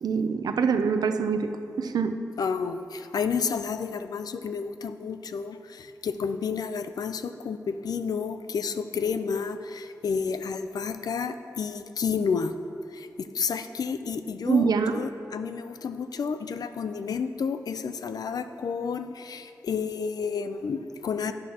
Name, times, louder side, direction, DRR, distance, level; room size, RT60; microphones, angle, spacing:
voice 1, 0.0-2.2 14.5-14.9, right 5 dB, 90° right, 8 dB, 0.5 m, -25 dB
voice 2, 2.4-12.5 12.9-21.3, left 5 dB, 75° left, 10 dB, 0.5 m, -31 dB
11.0 x 11.0 x 2.9 m, 2.6 s
wide cardioid pair, 105°, 7 cm